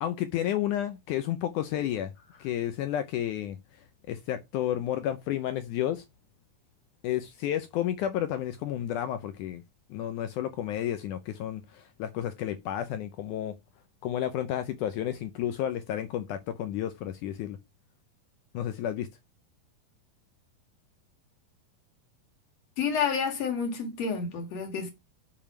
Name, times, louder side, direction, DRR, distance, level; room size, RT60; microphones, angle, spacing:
voice 1, 0.0-2.1 2.4-3.6 4.1-6.0 7.0-9.6 9.9-13.6 14.0-17.6 18.5-19.1, left 11 dB, 80° left, 1.8 m, -31 dB
voice 2, 22.8-24.9, left 6 dB, 50° left, 2.7 m, -29 dB
6.9 x 5.4 x 6.0 m
omnidirectional pair, 4.2 m